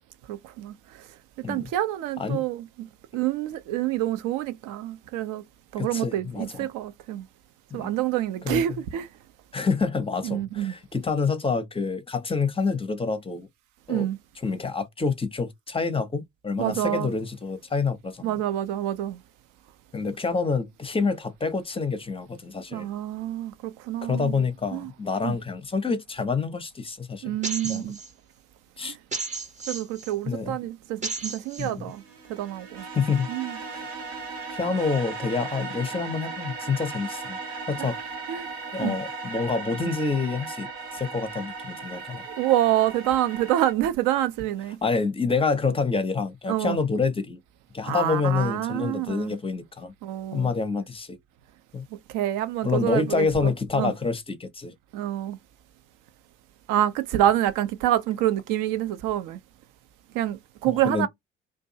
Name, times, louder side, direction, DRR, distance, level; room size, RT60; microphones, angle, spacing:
voice 1, 0.3-1.1 1.4-5.4 5.7-7.3 7.7-9.1 10.2-10.7 13.9-14.2 16.6-17.1 18.2-19.2 22.7-24.4 24.7-24.9 25.2-25.4 27.2-28.0 28.8-29.0 29.7-32.0 32.3-32.9 33.3-33.6 37.8-37.9 38.3-38.5 38.8-39.0 42.3-44.8 46.5-46.8 47.8-49.3 50.0-50.5 52.1-53.9 54.9-55.4 56.7-59.4 60.1-61.1, right 12 dB, 60° right, 0.5 m, -27 dB
voice 2, 5.8-6.7 7.7-7.9 8.4-8.6 9.5-13.5 13.9-14.1 14.4-18.4 19.9-22.9 24.0-27.3 27.6-27.9 28.8-29.0 30.3-30.6 31.6-31.9 32.9-33.3 33.7-33.9 34.5-37.4 37.7-38.0 38.7-42.3 44.8-47.4 47.7-49.9 50.3-51.2 51.7-51.9 52.6-54.7 60.7-61.1, left 4 dB, 15° left, 0.6 m, -27 dB
sound 1, 27.4-28.1 29.1-30.1 31.0-31.7, right 3 dB, 20° right, 0.8 m, -33 dB
sound 2, 31.9-43.7, right 4 dB, 80° right, 0.9 m, -37 dB
2.5 x 2.2 x 2.6 m
figure-of-eight pair, 50°, 37 cm